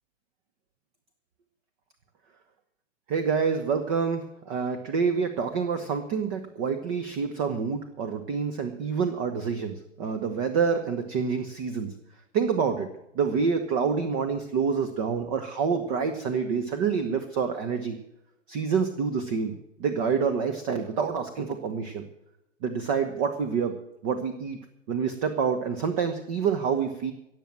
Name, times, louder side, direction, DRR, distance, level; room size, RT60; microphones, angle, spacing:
voice 1, 3.1-11.9 12.3-12.9 13.1-17.9 18.5-19.5 19.8-22.0 22.6-23.8 24.0-24.6 24.9-27.1, right 6 dB, 25° right, 7 dB, 1.1 m, -27 dB
17.0 x 7.6 x 7.5 m, 0.85 s
figure-of-eight pair, 125°, 38 cm